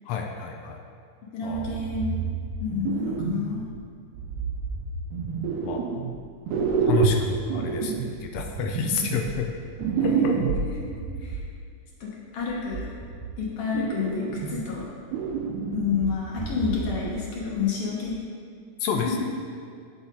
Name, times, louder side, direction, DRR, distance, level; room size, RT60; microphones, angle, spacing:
voice 1, 0.1-0.8 1.4-1.8 5.6-5.9 6.9-9.6 10.0-10.6 18.8-19.1, left 7 dB, 85° left, 3 dB, 1.4 m, -30 dB
voice 2, 1.3-2.3 2.6-3.6 10.0-10.4 11.2-11.4 12.0-12.9 13.4-14.8 15.7-18.2 19.0-19.2, left 6 dB, 50° left, -4 dB, 2.1 m, -29 dB
sound 1, 1.5-3.8 4.1-6.2 6.5-11.4 12.4-13.4 13.7-14.8 15.1-17.1 17.4-17.5 18.1-18.2, right 6 dB, 80° right, 2.1 m, -29 dB
11.5 x 7.0 x 2.8 m, 2.3 s
omnidirectional pair, 3.6 m